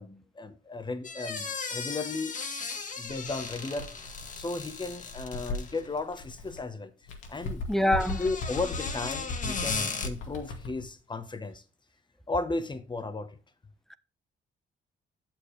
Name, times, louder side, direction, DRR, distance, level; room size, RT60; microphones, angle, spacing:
voice 1, 0.0-2.4 3.0-4.1 4.3-6.9 7.3-7.7 8.2-11.6 12.3-13.4, left 3 dB, 25° left, 1.2 m, -35 dB
sound 1, 1.0-5.9 7.8-10.1, left 4 dB, 40° left, 1.4 m, -36 dB
Bird, 3.1-6.6 7.0-10.9, left 2 dB, 80° left, 2.2 m, -38 dB
voice 2, 7.7-8.2, left 1 dB, ahead, 0.7 m, -24 dB
8.9 x 7.6 x 3.3 m
cardioid pair, 90°, 20 cm